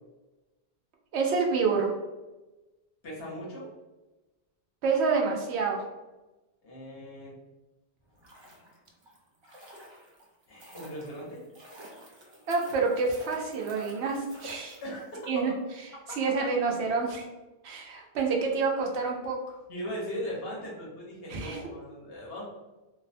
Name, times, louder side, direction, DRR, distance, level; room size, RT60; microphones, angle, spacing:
voice 1, 1.1-1.9 4.8-5.8 12.5-14.8 15.3-15.5 16.2-17.2 17.6-19.4 21.3-21.6, right 4 dB, 90° right, 0 dB, 0.9 m, -27 dB
voice 2, 3.0-3.7 6.6-7.3 10.5-11.4 14.8-15.2 19.7-22.4, equal, 65° left, -4 dB, 1.1 m, -38 dB
sound 1, 8.0-15.2 15.5-15.6, equal, 40° right, 0.4 m, -50 dB
2.6 x 2.1 x 2.5 m, 1.1 s
omnidirectional pair, 1.1 m